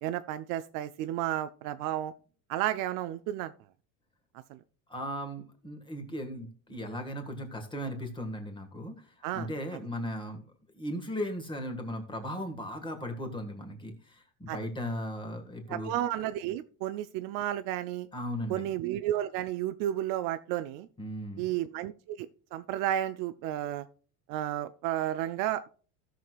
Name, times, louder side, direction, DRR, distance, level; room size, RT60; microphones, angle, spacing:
voice 1, 0.0-2.1 2.5-3.5 4.5-4.6 9.2-9.5 14.5-14.6 15.7-18.1 18.5-20.9 21.4-23.9 24.3-25.7, right 12 dB, 55° right, 11 dB, 0.6 m, -32 dB
voice 2, 4.9-8.9 9.3-10.5 10.7-15.9 18.1-18.7 21.0-21.5, equal, 10° left, 5 dB, 1.6 m, -37 dB
16.5 x 6.3 x 2.4 m, 0.40 s
cardioid pair, 165°, 40 cm